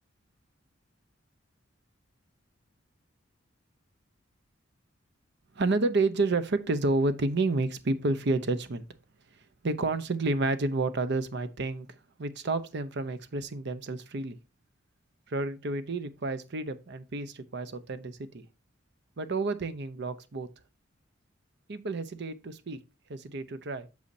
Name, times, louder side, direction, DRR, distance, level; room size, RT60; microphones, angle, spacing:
voice 1, 5.5-8.8 9.3-14.4 15.3-18.5 19.2-20.5 21.7-22.8 23.1-23.9, right 2 dB, 60° right, 0.7 m, -30 dB
8.3 x 6.4 x 2.7 m
head